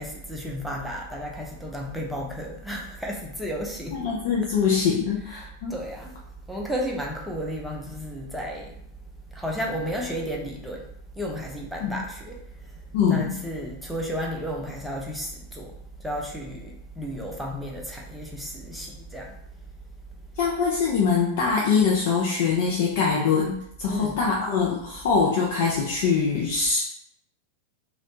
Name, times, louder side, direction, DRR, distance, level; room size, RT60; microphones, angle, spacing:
voice 1, 0.0-4.1 5.3-6.2 6.5-8.8 9.3-19.3 23.9-24.2, equal, ahead, -1 dB, 0.5 m, -33 dB
voice 2, 3.9-5.7 11.8-11.9 12.9-13.4 20.4-26.8, left 5 dB, 50° left, -2 dB, 0.4 m, -23 dB
2.4 x 2.0 x 2.9 m, 0.70 s
figure-of-eight pair, 90°, 0 cm